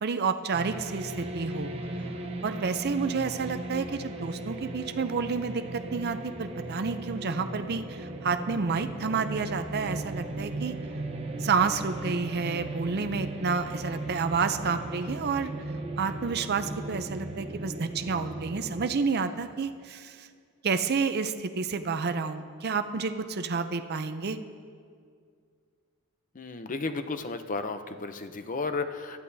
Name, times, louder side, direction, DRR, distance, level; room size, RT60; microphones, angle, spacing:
voice 1, 0.0-1.7 2.4-10.7 11.4-15.5 16.0-20.3 20.6-24.4, right 5 dB, 45° right, 9 dB, 0.5 m, -30 dB
sound 1, 0.5-18.9, right 2 dB, 25° right, 0.9 m, -37 dB
voice 2, 26.3-29.2, left 3 dB, 35° left, 9 dB, 0.6 m, -33 dB
19.5 x 13.0 x 2.7 m, 2.2 s
head